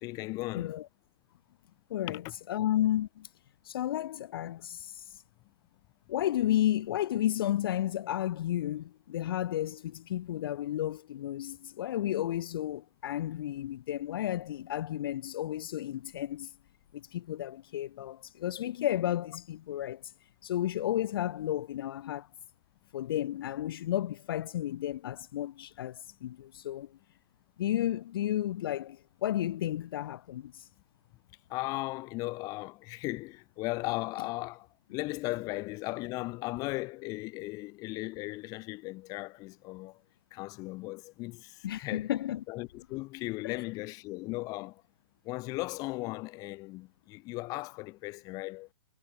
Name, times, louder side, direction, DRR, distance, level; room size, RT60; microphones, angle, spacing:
voice 1, 0.0-0.8 2.1-2.2 31.5-40.0 40.3-42.1 42.5-44.8 45.2-48.7, left 22 dB, 25° left, 1.3 m, -37 dB
voice 2, 0.5-0.9 1.9-3.3 3.6-5.2 6.1-16.5 16.9-20.1 20.4-22.3 22.9-27.0 27.6-30.7 41.6-42.4 43.4-43.6, left 12 dB, 50° left, 0.6 m, -32 dB
hypercardioid pair, 160°, 15 cm